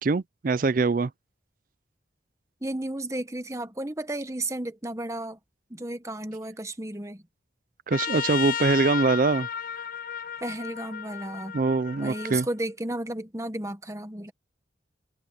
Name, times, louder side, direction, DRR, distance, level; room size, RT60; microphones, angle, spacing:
voice 1, 0.0-1.1 7.9-9.5 11.5-12.5, right 3 dB, 45° right, 0.4 m, -23 dB
voice 2, 2.6-5.4 5.7-7.2 10.4-11.6 12.0-14.3, right 1 dB, 15° right, 1.1 m, -33 dB
Trumpet, 7.9-12.5, left 8 dB, 45° left, 0.5 m, -33 dB
head